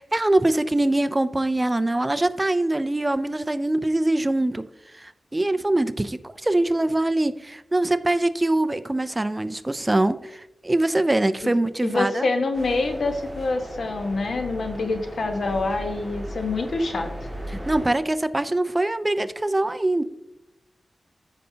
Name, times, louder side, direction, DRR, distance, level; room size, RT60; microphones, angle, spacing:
voice 1, 0.0-4.6 4.9-12.3 17.5-20.0, right 1 dB, 20° right, 13 dB, 0.3 m, -23 dB
voice 2, 11.8-17.1, left 3 dB, 75° left, 5 dB, 1.1 m, -26 dB
sound 1, 12.5-17.9, equal, 5° left, 1.9 m, -37 dB
14.0 x 5.4 x 2.8 m, 0.88 s
wide cardioid pair, 120°, 0 cm